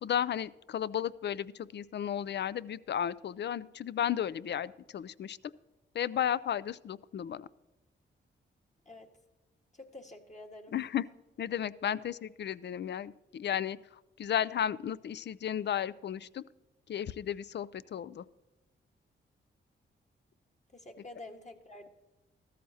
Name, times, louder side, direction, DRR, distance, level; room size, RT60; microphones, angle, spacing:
voice 1, 0.0-5.4 5.9-7.5 10.7-11.1 11.4-16.4 16.9-18.2, left 9 dB, 55° left, 19 dB, 0.4 m, -34 dB
voice 2, 9.7-10.7 11.8-12.0 20.7-21.9, left 2 dB, 35° left, 2 dB, 1.6 m, -48 dB
14.0 x 13.5 x 2.8 m, 1.0 s
cardioid pair, 60°, 21 cm